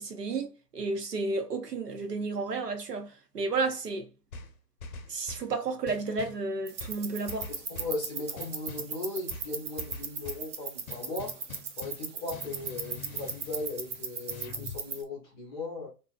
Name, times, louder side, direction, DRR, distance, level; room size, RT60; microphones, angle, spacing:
voice 1, 0.0-4.1 5.1-7.5, right 3 dB, 75° right, 0.9 m, -32 dB
sound 1, 4.3-5.5 5.9-6.4 6.8-8.0 8.4-8.9 9.3-10.5 10.9-14.8, left 4 dB, 60° left, 0.7 m, -45 dB
sound 2, 6.7-15.0, right 6 dB, 50° right, 0.6 m, -38 dB
voice 2, 7.7-11.5 11.8-15.9, left 3 dB, 15° left, 0.6 m, -37 dB
2.8 x 2.3 x 2.3 m
figure-of-eight pair, 120°, 48 cm